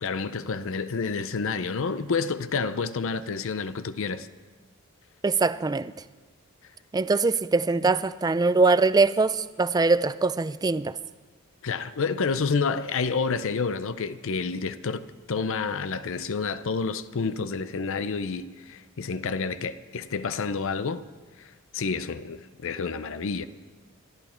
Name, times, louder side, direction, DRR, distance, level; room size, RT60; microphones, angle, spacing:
voice 1, 0.0-4.3 11.6-21.0 21.4-21.5 21.7-23.5, left 4 dB, 65° left, 0.6 m, -29 dB
voice 2, 5.2-5.9 6.9-11.0, right 3 dB, 20° right, 0.4 m, -22 dB
25.0 x 12.0 x 4.4 m
head